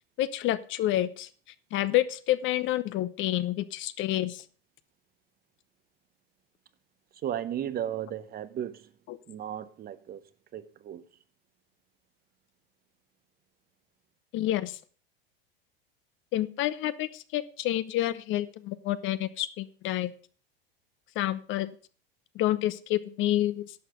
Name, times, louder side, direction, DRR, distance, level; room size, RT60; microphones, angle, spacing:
voice 1, 0.2-1.3 1.7-4.4 14.3-14.8 16.3-20.1 21.2-21.7 22.3-23.6, left 14 dB, 45° left, 0.8 m, -28 dB
voice 2, 7.2-8.9 9.3-10.2 10.5-11.0, right 10 dB, 30° right, 0.8 m, -35 dB
11.0 x 5.9 x 6.7 m
hypercardioid pair, 95°, 29 cm